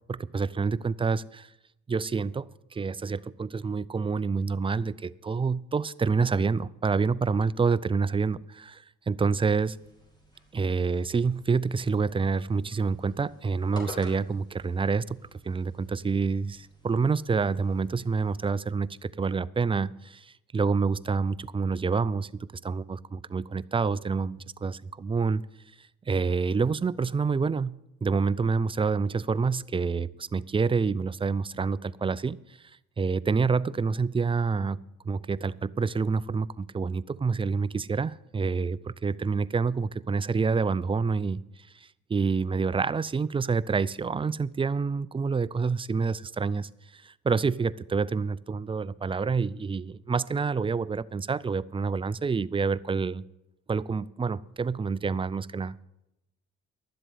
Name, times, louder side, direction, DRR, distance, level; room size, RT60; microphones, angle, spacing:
voice 1, 0.1-1.5 1.9-9.8 10.5-15.2 15.4-25.4 26.1-27.7 28.0-32.4 33.0-41.4 42.1-53.2 53.7-55.7, right 4 dB, 20° right, 0.4 m, -27 dB
sound 1, 9.3-18.5, left 1 dB, 15° left, 4.1 m, -51 dB
11.5 x 7.8 x 9.3 m
cardioid pair, 90°, 30 cm